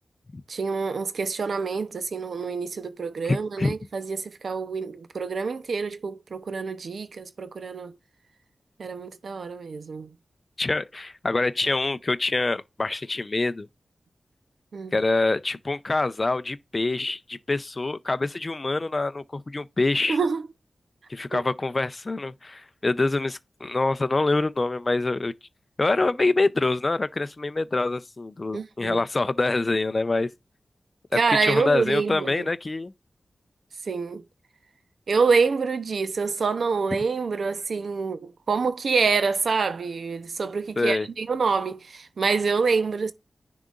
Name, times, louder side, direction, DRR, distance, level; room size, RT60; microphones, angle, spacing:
voice 1, 0.5-8.0 8.8-10.1 14.7-15.0 20.1-20.5 21.3-21.4 28.5-29.0 31.1-32.5 33.8-34.2 35.1-43.1, right 4 dB, 75° right, 0.7 m, -26 dB
voice 2, 3.3-3.8 10.6-13.7 14.9-20.2 21.1-25.3 25.8-30.3 31.1-32.9 40.8-41.1, left 2 dB, 35° left, 0.5 m, -25 dB
10.0 x 3.8 x 2.5 m
wide cardioid pair, 85°, 0 cm